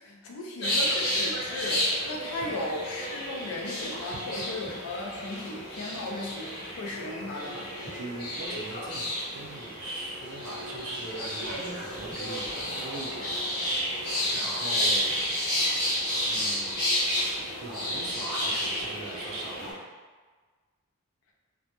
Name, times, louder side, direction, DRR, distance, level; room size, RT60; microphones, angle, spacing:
voice 1, 0.0-7.7, left 2 dB, 70° left, 0 dB, 0.4 m, -36 dB
sound 1, 0.6-19.7, equal, 50° left, 0.8 m, -31 dB
voice 2, 8.0-9.1 9.3-13.6 14.0-15.2 16.2-17.2 17.6-19.8, right 2 dB, 70° right, -3 dB, 0.6 m, -40 dB
2.1 x 2.1 x 2.9 m, 1.4 s
head